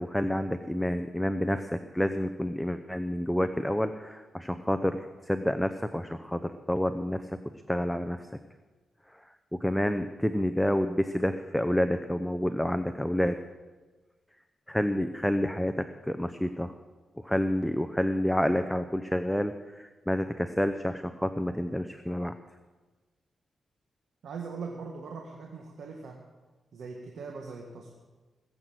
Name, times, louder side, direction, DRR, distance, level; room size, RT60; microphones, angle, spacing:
voice 1, 0.0-7.3 7.7-8.2 9.6-13.4 14.7-16.7 17.2-22.4, equal, 5° left, 9 dB, 0.7 m, -29 dB
voice 2, 24.2-26.2 26.7-27.9, right 4 dB, 75° right, 1 dB, 1.7 m, -40 dB
19.0 x 7.9 x 7.8 m, 1.3 s
cardioid pair, 80°, 0 cm